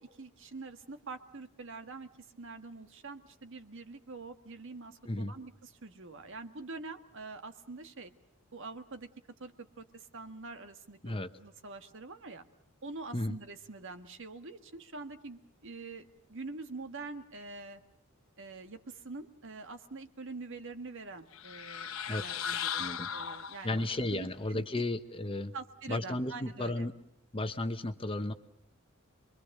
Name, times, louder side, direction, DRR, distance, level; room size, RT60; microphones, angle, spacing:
voice 1, 0.0-8.1 8.5-9.1 9.4-12.4 12.8-17.8 18.4-24.8 25.5-26.9, right 3 dB, 60° right, 8 dB, 1.7 m, -45 dB
sound 1, 21.3-24.0, left 8 dB, 70° left, 1.1 m, -37 dB
voice 2, 22.8-23.1 23.6-25.5 25.9-26.9 27.3-28.3, left 1 dB, 25° left, 9 dB, 1.1 m, -34 dB
28.0 x 22.5 x 6.6 m, 0.76 s
head